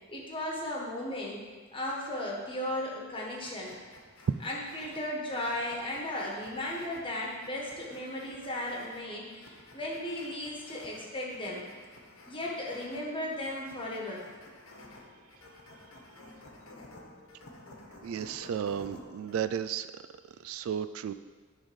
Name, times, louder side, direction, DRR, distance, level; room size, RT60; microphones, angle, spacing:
voice 1, 0.1-1.4 1.7-3.8 4.4-11.7 12.3-14.2, left 1 dB, 25° left, -3 dB, 1.5 m, -36 dB
sound 1, 3.4-19.4, left 2 dB, 80° left, 1.2 m, -53 dB
voice 2, 18.0-20.0 20.4-21.1, right 8 dB, 75° right, 13 dB, 0.3 m, -34 dB
10.5 x 3.8 x 5.3 m, 1.4 s
head